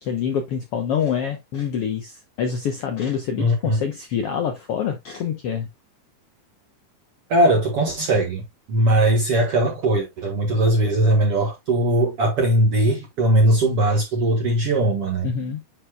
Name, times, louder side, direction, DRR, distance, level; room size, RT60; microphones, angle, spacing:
voice 1, 0.0-5.7 15.2-15.6, left 7 dB, 80° left, 1.3 m, -26 dB
voice 2, 3.4-3.8 7.3-8.4 8.7-15.3, right 1 dB, 55° right, 2.0 m, -19 dB
9.7 x 4.6 x 2.3 m
omnidirectional pair, 4.0 m